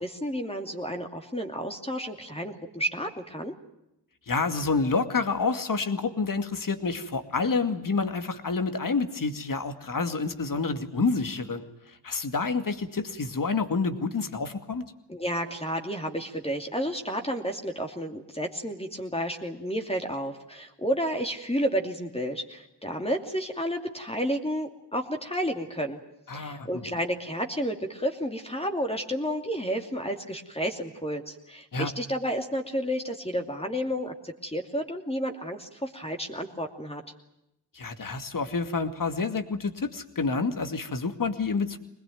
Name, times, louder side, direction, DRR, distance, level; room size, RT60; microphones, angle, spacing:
voice 1, 0.0-3.5 15.1-26.0 26.3-37.0, equal, 15° left, 3 dB, 2.8 m, -31 dB
voice 2, 4.3-14.8 26.3-26.8 31.7-31.9 37.7-41.8, left 4 dB, 50° left, 8 dB, 2.4 m, -28 dB
23.0 x 20.5 x 9.3 m, 0.86 s
cardioid pair, 70°, 43 cm